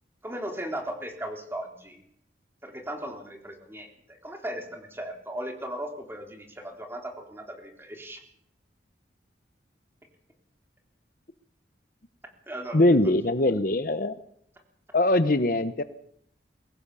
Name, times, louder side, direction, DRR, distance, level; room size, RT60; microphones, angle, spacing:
voice 1, 0.2-2.0 2.6-8.2 12.5-12.9, right 1 dB, 15° right, 3 dB, 3.7 m, -37 dB
voice 2, 12.7-14.2 14.9-15.8, left 1 dB, 50° left, 12 dB, 1.0 m, -22 dB
23.0 x 18.5 x 6.9 m, 0.68 s
head